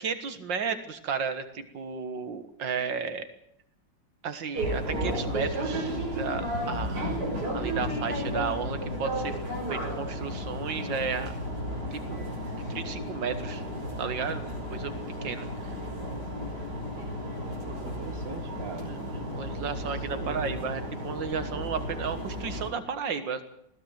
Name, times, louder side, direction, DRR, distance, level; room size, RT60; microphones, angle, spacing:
voice 1, 0.0-3.3 4.2-7.2 7.5-9.4 9.7-11.3 11.9-12.3 12.7-13.6 14.0-14.5 14.7-15.0 15.2-15.5 18.9-23.4, right 6 dB, 80° right, 10 dB, 2.2 m, -33 dB
sound 1, 4.5-22.7, equal, 60° right, 7.1 m, -33 dB
voice 2, 17.7-18.9 19.8-20.7, right 4 dB, 35° right, 8 dB, 1.8 m, -41 dB
20.5 x 16.0 x 9.3 m, 0.74 s
omnidirectional pair, 2.0 m